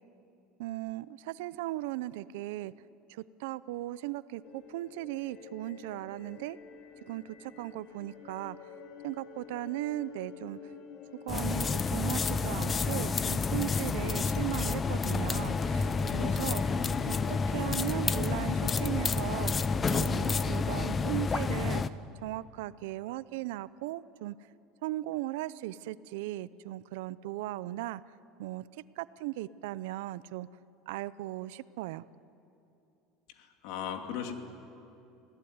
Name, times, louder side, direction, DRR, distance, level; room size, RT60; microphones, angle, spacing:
voice 1, 0.6-2.7 3.1-6.6 7.1-8.6 9.0-10.6 11.3-16.6 17.1-19.5 19.9-21.8 22.2-24.3 24.8-28.0 28.4-28.7 29.0-30.5 30.9-32.0, right 16 dB, 85° right, 17 dB, 0.6 m, -37 dB
sound 1, 4.4-21.0, left 6 dB, 50° left, 2.7 m, -48 dB
sound 2, 11.3-21.9, left 4 dB, 20° left, 0.7 m, -29 dB
voice 2, 33.3-34.3, left 9 dB, 70° left, 5 dB, 2.6 m, -37 dB
26.5 x 17.5 x 9.6 m, 2.8 s
supercardioid pair, 140°, 0 cm